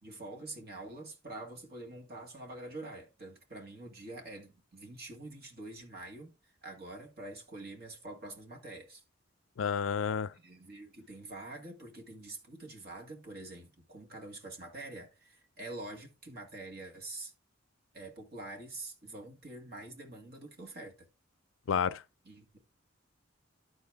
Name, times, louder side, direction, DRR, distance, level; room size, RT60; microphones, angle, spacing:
voice 1, 0.0-9.0 10.3-17.3 17.9-21.1 22.2-22.6, right 2 dB, 55° right, 2.2 m, -46 dB
voice 2, 9.6-10.3 21.7-22.0, left 6 dB, 80° left, 0.4 m, -30 dB
12.5 x 4.4 x 3.5 m
head